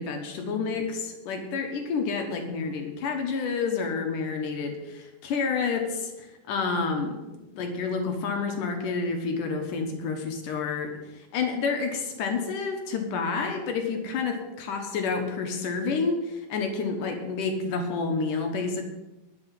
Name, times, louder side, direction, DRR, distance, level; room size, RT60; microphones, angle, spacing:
voice 1, 0.0-7.2 7.6-10.9 11.2-18.8, left 4 dB, 70° left, 4 dB, 2.8 m, -29 dB
12.0 x 6.4 x 9.2 m, 1.0 s
omnidirectional pair, 3.9 m